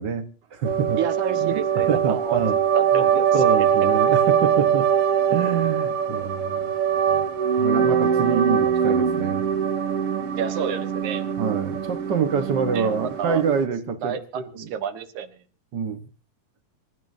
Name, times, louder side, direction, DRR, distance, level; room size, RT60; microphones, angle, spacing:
voice 1, 0.0-1.0 1.4-1.6 1.9-2.6 2.9-3.0 3.3-4.9 5.3-6.7 7.1-7.3 7.5-9.4 11.4-14.6 15.7-16.1, right 6 dB, 85° right, 0.9 m, -26 dB
sound 1, 0.6-13.7, right 8 dB, 50° right, 2.5 m, -22 dB
voice 2, 1.0-2.4 2.7-3.3 10.4-11.2 12.7-12.9 13.2-13.4 14.0-15.4, right 8 dB, 65° right, 2.7 m, -29 dB
26.5 x 14.5 x 2.7 m
omnidirectional pair, 3.8 m